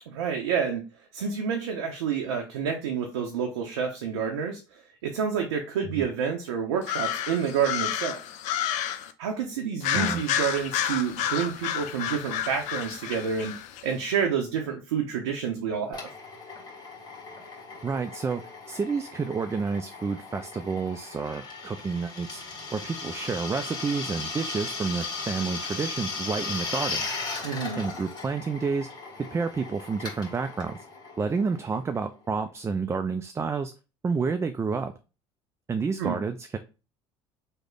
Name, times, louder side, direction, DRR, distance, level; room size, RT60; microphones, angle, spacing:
voice 1, 0.1-0.8 1.1-8.2 9.2-13.5 13.8-16.0 27.4-27.8 36.0-36.2, right 7 dB, 85° right, 3 dB, 0.6 m, -29 dB
sound 1, 6.8-9.1 9.8-13.8, left 10 dB, 60° left, 0.4 m, -30 dB
voice 2, 9.9-10.2 17.8-18.4 18.7-22.4 22.7-27.1 27.8-28.9 29.2-30.8 31.2-33.7 34.0-34.9 35.7-36.6, right 5 dB, 20° right, 8 dB, 0.3 m, -29 dB
Drill, 15.9-32.3, left 4 dB, 30° left, 1.7 m, -37 dB
3.2 x 2.1 x 3.7 m, 0.31 s
hypercardioid pair, 70°, 14 cm